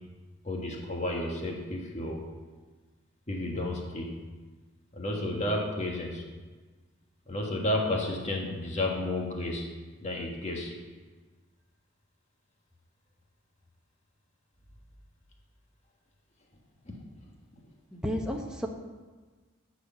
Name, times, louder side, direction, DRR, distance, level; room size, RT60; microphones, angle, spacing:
voice 1, 0.4-2.2 3.3-4.2 4.9-6.2 7.3-9.7 10.0-10.8 16.8-17.0, left 1 dB, 35° left, 0 dB, 1.6 m, -32 dB
voice 2, 17.9-18.7, equal, 5° right, 0 dB, 1.0 m, -32 dB
13.0 x 4.8 x 7.1 m, 1.4 s
head